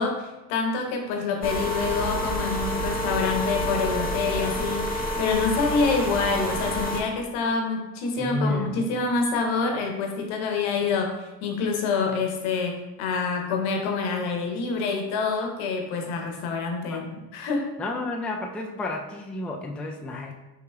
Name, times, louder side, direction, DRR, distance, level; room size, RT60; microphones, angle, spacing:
voice 1, 0.0-17.7, left 4 dB, 70° left, 3 dB, 1.0 m, -27 dB
sound 1, 1.4-7.0, left 1 dB, 20° left, 1.0 m, -28 dB
voice 2, 8.2-8.9 16.9-17.1 17.8-20.3, left 2 dB, 5° left, 1 dB, 0.4 m, -31 dB
5.3 x 3.7 x 2.3 m, 1.0 s
hypercardioid pair, 60°, 49 cm